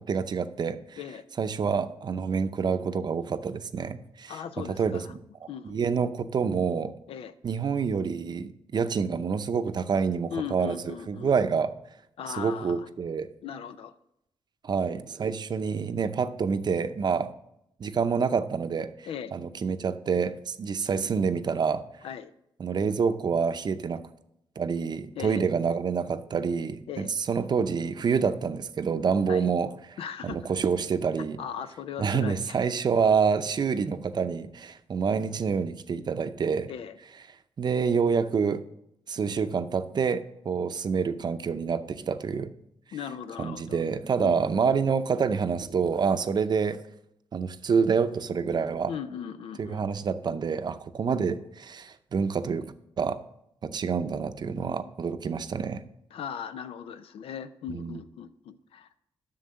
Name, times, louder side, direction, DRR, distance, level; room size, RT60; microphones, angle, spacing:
voice 1, 0.1-1.0 1.4-4.4 4.8-5.2 5.6-6.9 7.4-11.7 12.4-13.3 14.6-17.3 17.8-21.8 22.6-24.0 24.6-30.0 30.2-31.4 32.0-36.7 37.6-38.6 39.1-42.5 43.4-46.8 47.3-48.9 49.6-53.2 53.6-55.8 57.7-58.0, right 6 dB, 50° right, 10 dB, 0.6 m, -27 dB
voice 2, 4.3-5.1 5.5-5.8 7.1-7.3 10.3-11.4 12.2-12.9 13.4-13.9 19.1-19.4 22.0-22.3 25.2-25.4 26.9-27.1 29.3-29.5 30.0-30.5 31.4-32.6 36.7-37.0 42.9-43.8 44.2-44.4 48.9-49.8 56.1-59.0, left 8 dB, 80° left, 12 dB, 0.5 m, -38 dB
7.7 x 6.5 x 7.5 m, 0.79 s
cardioid pair, 90°, 10 cm